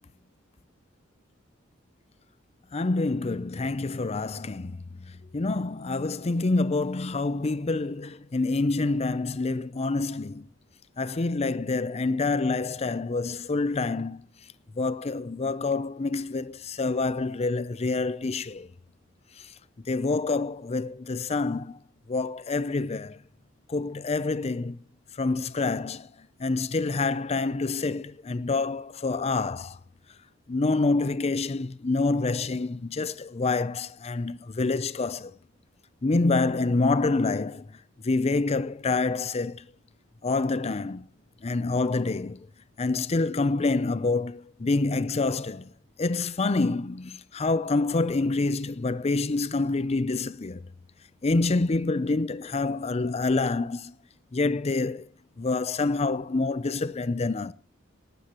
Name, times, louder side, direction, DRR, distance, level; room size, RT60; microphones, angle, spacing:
voice 1, 2.7-4.8 5.3-10.4 11.0-14.2 14.8-18.7 19.9-21.8 22.1-23.2 23.7-24.8 25.2-26.1 26.4-29.8 30.5-35.3 36.0-37.6 38.0-39.6 40.2-41.1 41.4-42.4 42.8-45.7 46.0-50.6 51.2-53.9 54.3-55.1 55.4-57.5, left 3 dB, 35° left, 0.5 m, -27 dB
19.0 x 12.5 x 3.0 m
head